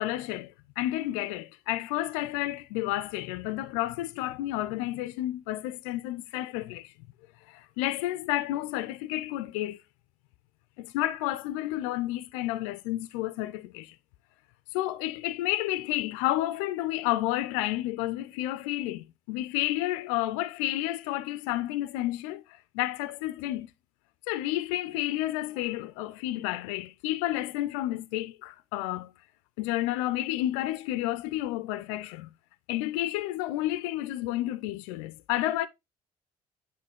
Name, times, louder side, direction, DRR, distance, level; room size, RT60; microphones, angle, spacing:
voice 1, 0.0-6.9 7.5-9.8 10.8-14.0 14.7-23.7 24.3-29.1 29.6-32.3 32.7-35.7, left 15 dB, 70° left, 0.5 m, -31 dB
9.5 x 3.2 x 3.5 m
hypercardioid pair, 55°, 18 cm